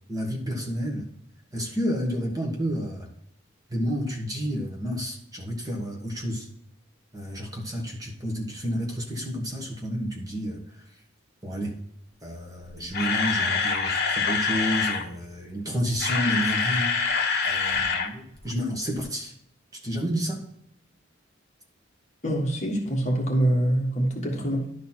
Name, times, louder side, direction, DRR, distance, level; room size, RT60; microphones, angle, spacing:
voice 1, 0.1-1.1 1.5-3.1 3.7-6.5 7.1-10.8 11.4-11.7 12.2-17.1 17.4-19.3 19.7-20.4, equal, 20° right, 1.4 m, -30 dB
Camera, 12.6-15.0 15.8-18.1 18.4-18.5 19.0-19.1, left 5 dB, 55° left, 0.9 m, -25 dB
voice 2, 22.2-24.7, right 1 dB, 35° left, 1.6 m, -25 dB
11.5 x 4.1 x 4.3 m
head